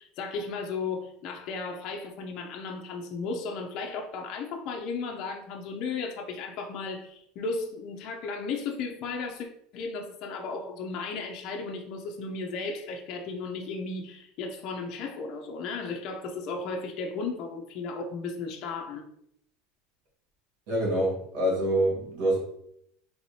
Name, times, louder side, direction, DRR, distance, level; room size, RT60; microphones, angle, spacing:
voice 1, 0.0-9.5 9.7-19.1, left 4 dB, 50° left, 2 dB, 0.5 m, -35 dB
voice 2, 20.7-22.4, right 1 dB, 65° right, -2 dB, 1.5 m, -26 dB
3.2 x 3.1 x 2.7 m, 0.74 s
supercardioid pair, 135°, 0 cm